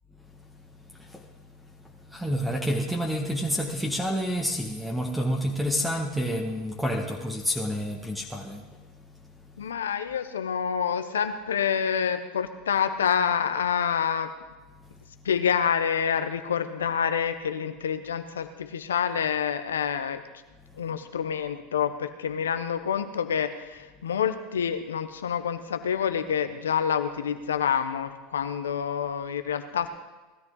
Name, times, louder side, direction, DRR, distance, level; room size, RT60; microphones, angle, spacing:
voice 1, 0.1-9.7 14.7-15.3 20.6-20.9, equal, 5° right, 0 dB, 1.8 m, -30 dB
voice 2, 9.6-14.3 15.2-20.2 20.8-29.9, left 7 dB, 85° left, 9 dB, 1.1 m, -27 dB
19.0 x 13.0 x 4.0 m, 1.2 s
hypercardioid pair, 90°, 0 cm